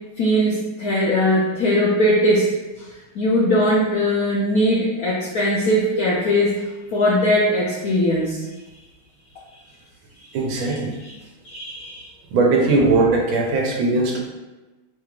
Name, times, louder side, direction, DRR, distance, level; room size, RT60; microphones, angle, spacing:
voice 1, 0.2-2.5 2.8-2.9 3.1-6.5 6.9-8.4 10.6-10.7 11.0-11.1 11.4-12.1, equal, 70° left, -5 dB, 0.8 m, -20 dB
voice 2, 10.3-10.9 12.3-14.2, right 3 dB, 85° right, 1 dB, 1.5 m, -19 dB
5.0 x 3.0 x 2.4 m, 1.2 s
omnidirectional pair, 2.2 m